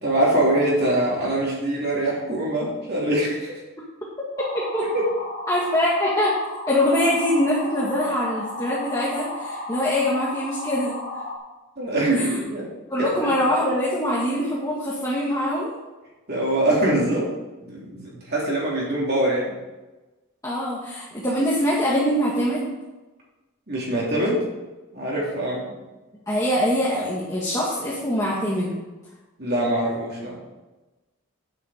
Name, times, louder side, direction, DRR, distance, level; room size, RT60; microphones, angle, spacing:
voice 1, 0.0-3.6 4.8-5.1 11.8-12.7 13.0-13.3 16.3-17.3 17.6-19.5 23.7-24.4 24.9-25.6 29.4-30.4, right 1 dB, 45° right, -4 dB, 3.0 m, -23 dB
sound 1, 4.4-11.4, left 2 dB, 45° left, 2.7 m, -34 dB
voice 2, 4.5-4.9 5.5-6.4 6.7-10.9 12.2-12.3 12.9-15.7 20.4-22.8 26.3-28.8, left 1 dB, 15° left, -6 dB, 1.6 m, -23 dB
9.3 x 8.5 x 4.9 m, 1.1 s
head